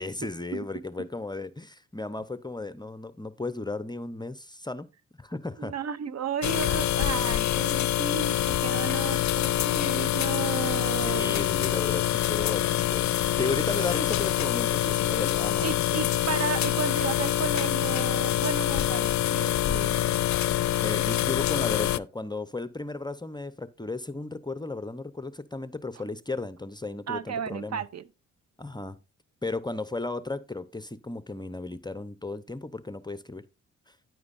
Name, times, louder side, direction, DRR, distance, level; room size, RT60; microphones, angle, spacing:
voice 1, 0.0-4.9 5.2-5.7 11.0-15.7 20.8-27.8 28.6-29.0 29.4-33.4 33.9-34.0, left 2 dB, 15° left, 0.8 m, -35 dB
voice 2, 0.5-1.1 5.6-11.4 15.1-15.2 15.6-20.0 27.1-28.0, right 7 dB, 50° right, 0.7 m, -34 dB
sound 1, 6.4-22.0, left 13 dB, 55° left, 0.5 m, -26 dB
9.8 x 9.5 x 2.6 m
supercardioid pair, 60°, 33 cm